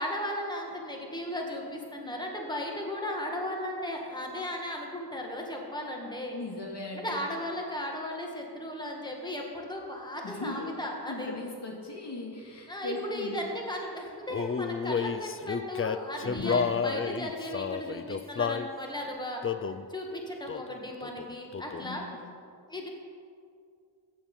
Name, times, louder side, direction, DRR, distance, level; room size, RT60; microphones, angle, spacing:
voice 1, 0.0-6.4 6.9-11.3 12.7-19.4 19.9-22.0 22.7-22.9, left 1 dB, 10° left, 0 dB, 1.8 m, -36 dB
voice 2, 6.3-7.2 10.2-13.4 16.2-16.8 21.8-22.2, left 2 dB, 80° left, -1 dB, 2.5 m, -38 dB
Male singing, 14.3-18.7 19.4-19.9 20.5-20.8 21.0-22.0, left 6 dB, 35° left, 0.4 m, -31 dB
14.5 x 9.3 x 5.5 m, 2.3 s
wide cardioid pair, 115°, 41 cm